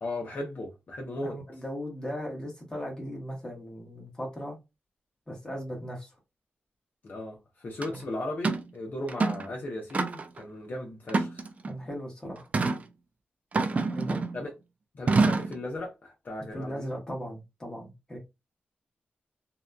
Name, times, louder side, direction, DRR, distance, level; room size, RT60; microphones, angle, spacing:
voice 1, 0.0-1.4 7.0-11.5 14.3-14.5 14.9-16.9, left 1 dB, 50° left, 0.7 m, -36 dB
voice 2, 1.2-4.6 5.3-6.1 7.9-8.0 11.7-12.5 13.7-14.2 16.5-18.2, equal, 15° left, 1.2 m, -37 dB
sound 1, 7.8-7.9 8.4-8.7 9.1-9.5 9.9-10.4 11.1-11.7 12.5-12.8 13.5-14.4 15.1-15.6, right 3 dB, 35° right, 0.4 m, -26 dB
2.7 x 2.3 x 2.2 m
wide cardioid pair, 115°, 4 cm